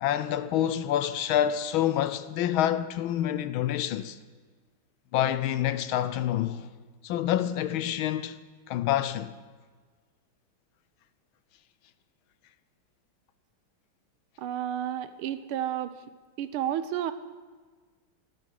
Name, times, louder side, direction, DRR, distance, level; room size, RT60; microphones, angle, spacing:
voice 1, 0.0-4.2 5.1-6.7 7.0-8.4 8.7-9.3, left 11 dB, 75° left, 1.4 m, -27 dB
voice 2, 14.4-16.0 16.4-17.1, right 11 dB, 80° right, 1.6 m, -31 dB
15.0 x 12.5 x 6.4 m
omnidirectional pair, 2.4 m